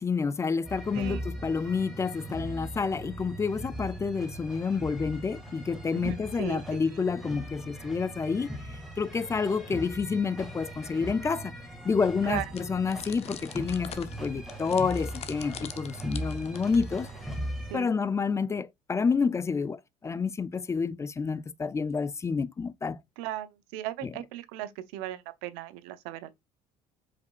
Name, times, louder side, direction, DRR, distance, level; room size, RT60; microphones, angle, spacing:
voice 1, 0.0-11.5 11.8-17.1 17.7-23.0 24.0-24.1, left 5 dB, 20° left, 0.3 m, -29 dB
sound 1, 0.6-17.8, right 1 dB, ahead, 1.7 m, -39 dB
voice 2, 5.9-6.6 12.2-12.4 17.7-17.9 23.2-26.3, right 13 dB, 85° right, 0.6 m, -37 dB
sound 2, 12.5-17.3, left 9 dB, 45° left, 0.7 m, -44 dB
5.1 x 3.9 x 2.3 m
supercardioid pair, 95°, 14 cm